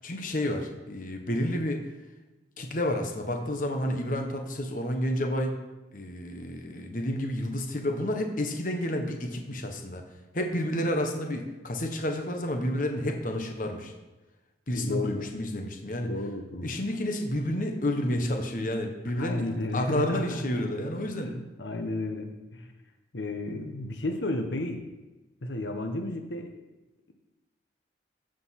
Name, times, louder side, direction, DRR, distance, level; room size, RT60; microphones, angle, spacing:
voice 1, 0.0-1.8 2.6-5.6 5.9-10.0 10.3-13.9 14.7-16.1 16.6-21.3, left 1 dB, 45° left, 3 dB, 1.3 m, -30 dB
voice 2, 14.7-15.3 16.0-16.7 19.2-20.7 21.2-22.7 23.1-24.9 25.4-26.5, left 2 dB, 85° left, 5 dB, 1.1 m, -33 dB
14.5 x 5.2 x 5.9 m, 1.1 s
head